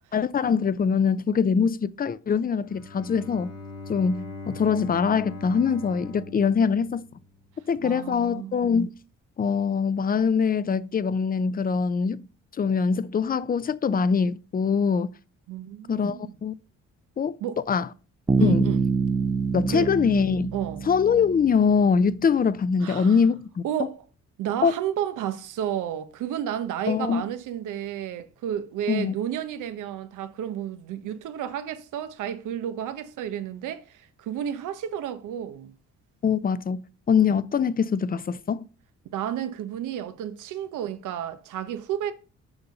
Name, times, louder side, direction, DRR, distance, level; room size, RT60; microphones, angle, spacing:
voice 1, 0.1-3.5 3.9-7.1 7.7-8.9 9.4-12.3 12.6-15.1 15.9-16.5 17.2-17.4 17.7-17.9 18.4-18.6 19.5-20.5 20.9-23.9 24.6-24.7 26.9-27.2 28.9-29.2 36.2-38.7, left 6 dB, 30° left, 0.6 m, -23 dB
Bowed string instrument, 2.6-7.6, left 3 dB, 55° left, 1.8 m, -41 dB
voice 2, 7.8-8.7 15.5-16.3 17.4-17.6 18.4-18.8 19.7-19.9 20.5-20.9 22.8-23.2 23.6-24.0 24.4-35.7 39.1-42.1, right 10 dB, 85° right, 1.0 m, -32 dB
Bass guitar, 18.3-22.0, right 4 dB, 15° right, 0.5 m, -26 dB
7.1 x 5.3 x 5.3 m
cardioid pair, 90°, 30 cm